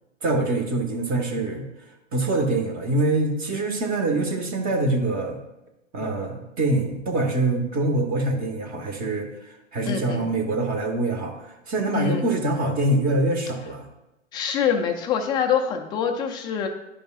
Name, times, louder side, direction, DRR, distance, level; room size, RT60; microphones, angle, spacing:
voice 1, 0.2-1.6 2.1-5.4 5.9-9.3 9.7-13.9, right 2 dB, 20° right, 3 dB, 1.2 m, -24 dB
voice 2, 9.9-10.3 11.9-12.3 14.3-16.7, left 7 dB, 10° left, 4 dB, 0.4 m, -25 dB
11.0 x 5.2 x 2.4 m, 0.94 s
hypercardioid pair, 120°, 39 cm